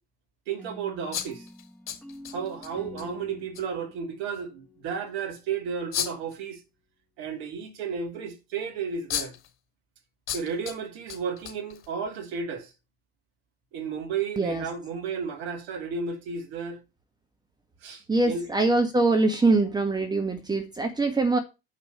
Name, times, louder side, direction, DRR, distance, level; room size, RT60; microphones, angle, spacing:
voice 1, 0.5-1.5 2.3-6.6 7.2-9.3 10.3-12.7 13.7-16.8 17.8-18.5, right 6 dB, 55° right, 2.4 m, -33 dB
sound 1, 0.6-5.5, left 2 dB, 5° left, 1.4 m, -47 dB
sound 2, 1.1-2.7 3.0-3.1 3.5-3.6 5.9-6.3 8.6-8.7 9.1-9.5 10.3-10.8 11.1-12.1, left 9 dB, 40° left, 3.6 m, -33 dB
voice 2, 18.1-21.4, right 3 dB, 15° right, 1.3 m, -23 dB
8.1 x 5.6 x 5.8 m
figure-of-eight pair, 70°, 30 cm